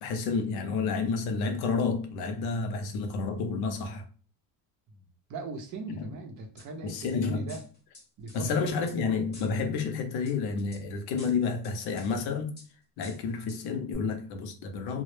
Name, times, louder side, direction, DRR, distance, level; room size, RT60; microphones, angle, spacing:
voice 1, 0.0-4.0 5.9-6.2 6.8-7.5 8.3-12.5 13.0-15.0, left 4 dB, 60° left, 0.6 m, -30 dB
voice 2, 5.3-7.6 8.2-9.2, right 3 dB, 45° right, 0.5 m, -40 dB
sound 1, 6.6-7.1 7.5-9.0 9.3-9.9 10.3-10.8 11.2-12.2 12.6-12.7 13.0-13.6 13.9-14.0, left 2 dB, 25° left, 0.7 m, -51 dB
2.0 x 2.0 x 3.0 m
cardioid pair, 135°, 44 cm